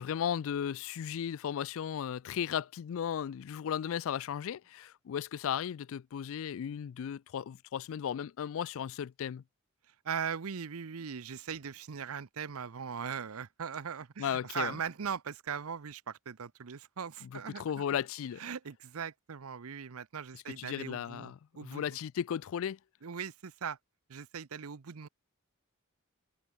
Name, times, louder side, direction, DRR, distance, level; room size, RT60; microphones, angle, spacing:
voice 1, 0.0-9.4 14.2-14.8 17.2-18.4 20.3-22.8, left 8 dB, 65° left, 0.3 m, -35 dB
voice 2, 10.0-17.8 18.4-22.0 23.0-23.8 24.1-25.1, right 7 dB, 80° right, 0.7 m, -39 dB
head